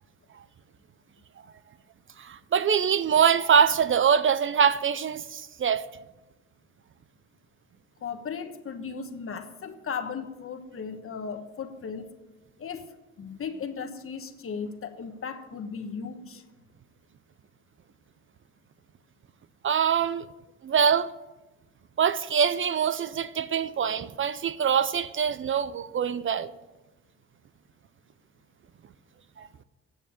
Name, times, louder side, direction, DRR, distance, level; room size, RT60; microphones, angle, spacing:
voice 1, 2.2-5.8 19.6-20.3 20.6-21.1 22.0-26.5 29.4-29.5, right 7 dB, 40° right, 0.5 m, -24 dB
voice 2, 8.0-12.1 12.6-16.4, left 6 dB, 45° left, 1.3 m, -36 dB
9.5 x 7.0 x 8.8 m
cardioid pair, 90°, 30 cm